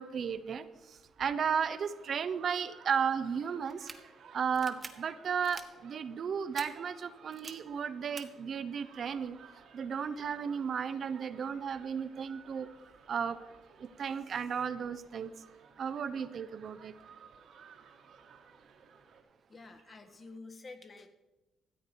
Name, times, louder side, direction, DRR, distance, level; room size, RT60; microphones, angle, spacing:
voice 1, 0.0-3.9 4.3-9.4 9.7-12.7 13.1-13.4 13.8-15.3 15.8-17.0, right 7 dB, 55° right, 12 dB, 0.7 m, -34 dB
sound 1, 1.7-19.2, right 6 dB, 75° right, 1.7 m, -57 dB
sound 2, 3.7-4.0 4.5-4.9 5.4-5.7 6.5-6.7 7.3-7.5 8.2-8.3, right 4 dB, 35° right, 1.2 m, -44 dB
voice 2, 19.5-21.1, left 3 dB, 40° left, 8 dB, 1.4 m, -49 dB
14.5 x 7.9 x 5.2 m, 1.0 s
cardioid pair, 90°, 0 cm